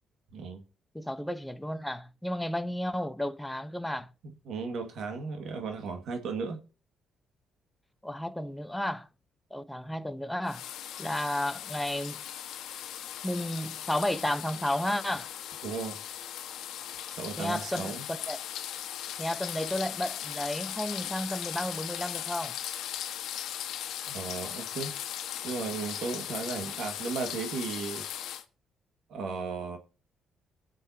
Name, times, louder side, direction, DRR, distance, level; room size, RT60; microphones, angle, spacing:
voice 1, 0.3-0.6 4.5-6.6 15.6-16.2 17.2-18.0 24.1-24.9 25.4-28.0 29.1-29.8, right 4 dB, 75° right, 1.9 m, -35 dB
voice 2, 0.9-4.1 8.0-9.1 9.5-10.6 11.0-12.2 13.2-15.3 17.4-18.4 19.2-22.5, left 1 dB, 5° left, 0.9 m, -32 dB
sound 1, 10.5-28.4, left 11 dB, 85° left, 1.2 m, -38 dB
22.5 x 7.5 x 2.8 m
cardioid pair, 90°, 0 cm